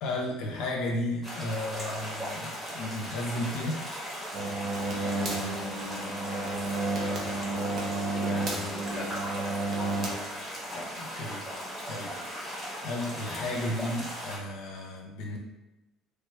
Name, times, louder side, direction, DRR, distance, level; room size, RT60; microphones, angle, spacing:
voice 1, 0.0-3.8 11.0-11.4 11.8-12.1 12.4-12.5 12.8-15.4, left 1 dB, 70° left, -1 dB, 0.6 m, -33 dB
sound 1, 1.2-14.4, equal, 15° right, 1.2 m, -38 dB
sound 2, 4.3-10.1, right 2 dB, 50° right, 0.7 m, -31 dB
voice 2, 5.0-7.2 8.1-9.2 10.7-10.9, equal, 15° left, -4 dB, 0.8 m, -41 dB
3.2 x 2.2 x 3.2 m, 1.0 s
cardioid pair, 120°, 0 cm